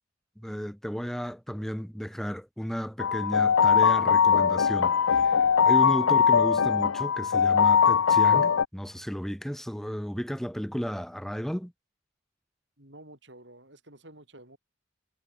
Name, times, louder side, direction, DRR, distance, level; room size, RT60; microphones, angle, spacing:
voice 1, 0.4-5.4 5.6-11.7, equal, ahead, 1.1 m, -33 dB
sound 1, 3.0-8.6, left 7 dB, 85° left, 0.6 m, -21 dB
voice 2, 12.8-14.6, right 1 dB, 60° right, 7.1 m, -50 dB
head